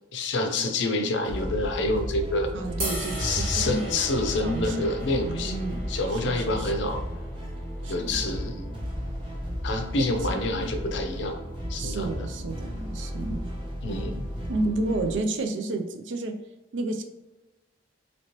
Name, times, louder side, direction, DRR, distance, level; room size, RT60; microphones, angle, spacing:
voice 1, 0.1-2.5 3.2-5.6 5.9-7.0 7.9-8.7 9.6-11.4 11.7-12.3 13.8-14.3, left 2 dB, 70° left, 5 dB, 0.5 m, -27 dB
sound 1, 1.2-15.2, equal, 25° right, 0.6 m, -34 dB
voice 2, 2.5-4.1 4.4-5.8 6.1-6.9 7.8-8.2 11.8-13.5 14.5-16.3 16.7-17.0, right 2 dB, 75° right, 5 dB, 0.4 m, -31 dB
sound 2, 2.8-5.9, equal, 20° left, 0.5 m, -38 dB
sound 3, 2.8-9.0, right 1 dB, 50° right, 1.3 m, -39 dB
2.9 x 2.9 x 2.9 m, 1.0 s
head